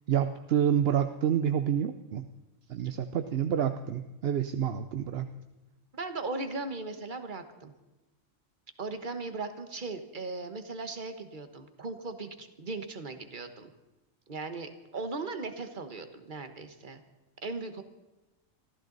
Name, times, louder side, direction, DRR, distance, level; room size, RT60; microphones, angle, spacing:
voice 1, 0.1-2.3 2.7-5.3, right 9 dB, 55° right, 9 dB, 0.8 m, -28 dB
voice 2, 5.9-7.7 8.8-13.7 14.3-17.0 17.4-17.8, right 3 dB, 35° right, 8 dB, 1.4 m, -38 dB
24.5 x 15.0 x 4.0 m, 1.1 s
omnidirectional pair, 1.4 m